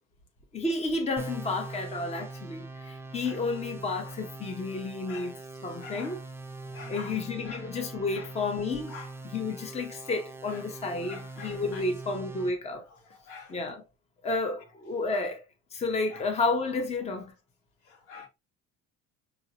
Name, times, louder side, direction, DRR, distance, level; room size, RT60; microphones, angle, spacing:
voice 1, 0.5-5.3 5.6-6.2 6.9-8.9 9.3-12.8 13.5-13.8 14.2-15.4 15.7-17.3, left 3 dB, 20° left, 0.9 m, -31 dB
sound 1, 1.2-12.5, right 3 dB, 10° right, 0.5 m, -42 dB
voice 2, 5.1-6.2 6.6-7.7 8.1-8.3 8.9-9.1 10.5-10.7 11.0-11.9 12.7-13.6 16.1-16.3 17.8-18.3, left 5 dB, 75° left, 1.7 m, -47 dB
5.0 x 2.8 x 2.8 m
cardioid pair, 125°, 30 cm